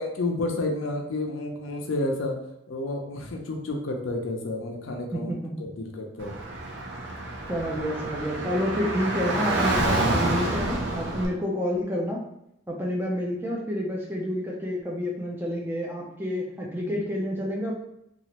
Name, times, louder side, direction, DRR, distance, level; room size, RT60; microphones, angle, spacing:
voice 1, 0.0-2.4 2.7-5.3 5.6-6.3, left 2 dB, 85° left, 2 dB, 0.5 m, -30 dB
voice 2, 5.1-5.6 7.5-12.2 12.7-17.7, equal, 10° right, -2 dB, 0.5 m, -29 dB
Car / Traffic noise roadway noise, 6.2-11.3, right 2 dB, 65° right, 0.6 m, -28 dB
3.0 x 2.4 x 2.9 m, 0.79 s
head